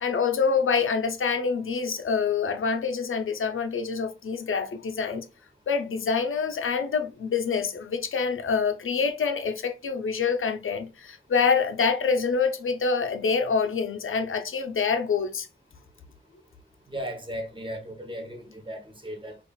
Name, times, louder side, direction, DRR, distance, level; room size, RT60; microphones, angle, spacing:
voice 1, 0.0-5.2 5.7-15.5, left 5 dB, 75° left, 0.6 m, -26 dB
voice 2, 16.9-19.4, equal, 25° right, 1.0 m, -36 dB
5.3 x 2.5 x 2.3 m
wide cardioid pair, 90°, 21 cm